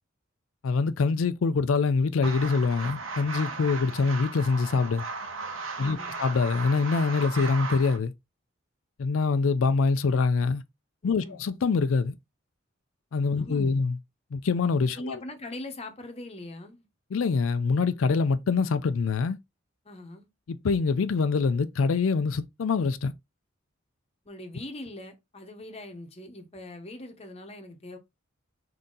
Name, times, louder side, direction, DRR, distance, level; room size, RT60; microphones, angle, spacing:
voice 1, 0.6-5.0 5.8-8.1 9.0-10.6 11.0-12.1 13.1-14.0 14.3-15.2 17.1-19.4 20.5-23.1, left 4 dB, 90° left, 0.4 m, -25 dB
sound 1, 2.2-8.0, right 4 dB, 85° right, 1.0 m, -36 dB
voice 2, 5.8-6.2 11.0-11.4 13.3-13.8 15.0-16.9 19.8-20.3 24.2-28.0, left 1 dB, 30° left, 0.9 m, -41 dB
3.8 x 2.8 x 3.7 m
head